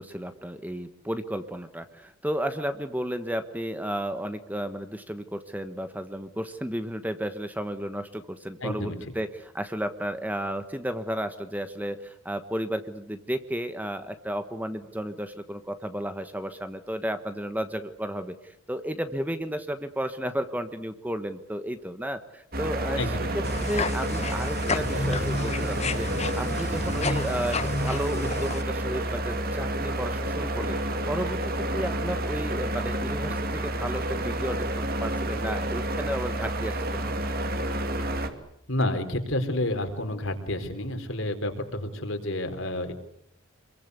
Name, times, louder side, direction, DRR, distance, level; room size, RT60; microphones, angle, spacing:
voice 1, 0.0-37.2, equal, 10° right, 9 dB, 1.3 m, -33 dB
voice 2, 8.6-9.0 22.9-23.3 38.7-42.9, left 1 dB, 65° left, 6 dB, 4.3 m, -29 dB
sound 1, 22.5-38.3, right 1 dB, 45° right, 2.6 m, -29 dB
sound 2, 23.4-28.6, left 3 dB, 30° left, 1.1 m, -31 dB
27.5 x 23.0 x 8.3 m, 0.73 s
head